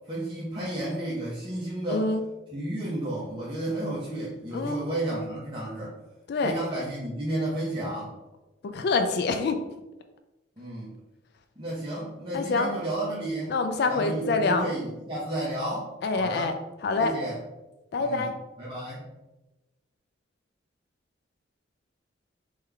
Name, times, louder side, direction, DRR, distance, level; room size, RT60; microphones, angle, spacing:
voice 1, 0.1-2.1 2.5-6.0 6.4-8.1 10.6-10.9 11.6-13.6 13.9-16.6 17.0-17.4 18.0-18.3 18.6-19.0, right 1 dB, 25° right, -8 dB, 0.8 m, -32 dB
voice 2, 1.9-2.2 4.5-4.8 6.3-6.5 8.6-9.6 12.3-12.7 13.5-14.7 16.0-16.5 16.8-17.1 17.9-18.3, left 3 dB, 55° left, 6 dB, 0.3 m, -26 dB
3.7 x 3.2 x 3.3 m, 1.0 s
head